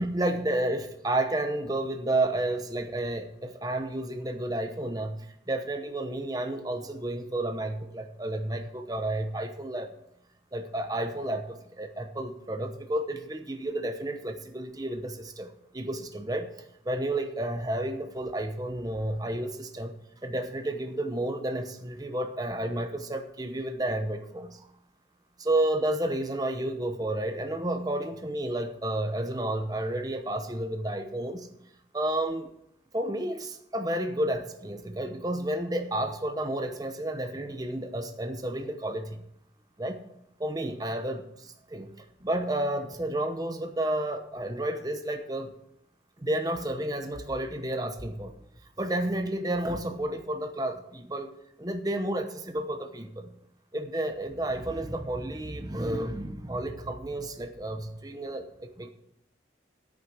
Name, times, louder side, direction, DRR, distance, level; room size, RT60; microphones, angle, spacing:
voice 1, 0.0-5.2 5.5-9.9 10.5-16.5 16.8-19.9 20.2-24.6 25.4-31.5 31.9-32.5 32.9-39.2 39.8-40.0 40.4-41.2 41.7-41.9 42.2-45.5 46.2-48.3 48.8-51.3 51.6-53.3 53.7-58.9, right 1 dB, 20° right, 6 dB, 0.8 m, -31 dB
10.0 x 9.1 x 6.1 m, 0.75 s
head